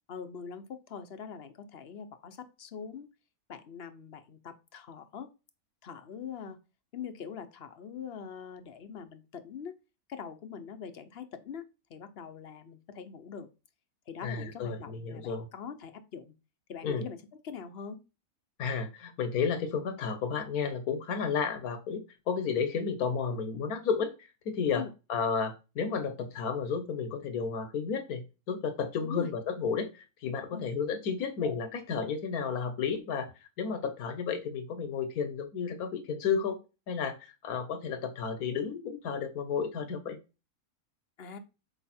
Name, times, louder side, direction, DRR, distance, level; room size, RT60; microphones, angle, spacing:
voice 1, 0.1-3.1 3.5-5.3 5.8-6.6 6.9-9.7 10.1-13.5 14.1-16.3 16.7-18.0 24.7-24.9 29.0-29.3 30.5-30.7 41.2-41.4, left 7 dB, 50° left, 11 dB, 0.9 m, -43 dB
voice 2, 14.2-15.5 16.8-17.0 18.6-33.3 33.6-36.6 36.9-40.2, left 6 dB, 80° left, 10 dB, 1.5 m, -32 dB
7.0 x 4.9 x 4.3 m, 0.29 s
omnidirectional pair, 1.5 m